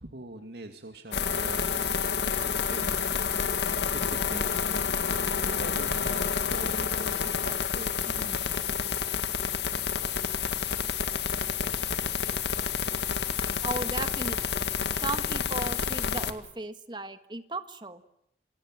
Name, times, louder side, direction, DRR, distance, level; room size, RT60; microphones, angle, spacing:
voice 1, 0.0-4.7 5.3-9.3, right 2 dB, 75° right, 5 dB, 2.4 m, -44 dB
sound 1, 1.1-16.3, left 6 dB, 80° left, 2.0 m, -29 dB
voice 2, 13.6-14.7 15.0-18.0, right 2 dB, 25° right, 10 dB, 1.5 m, -36 dB
28.0 x 25.0 x 7.6 m, 0.78 s
head